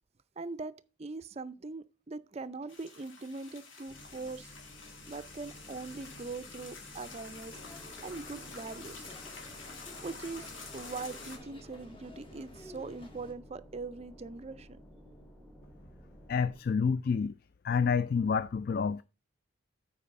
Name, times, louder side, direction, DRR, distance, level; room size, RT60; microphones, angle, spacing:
voice 1, 0.4-4.5 5.1-7.6 8.0-9.1 10.0-14.8, right 3 dB, 30° right, 0.4 m, -42 dB
sound 1, 2.7-11.4, left 4 dB, 80° left, 2.1 m, -48 dB
sound 2, 3.9-16.6, equal, 5° left, 1.1 m, -54 dB
sound 3, 7.5-13.3, left 1 dB, 25° left, 1.6 m, -53 dB
voice 2, 16.3-17.3 17.6-19.0, left 6 dB, 50° left, 0.3 m, -28 dB
8.4 x 4.8 x 5.4 m
head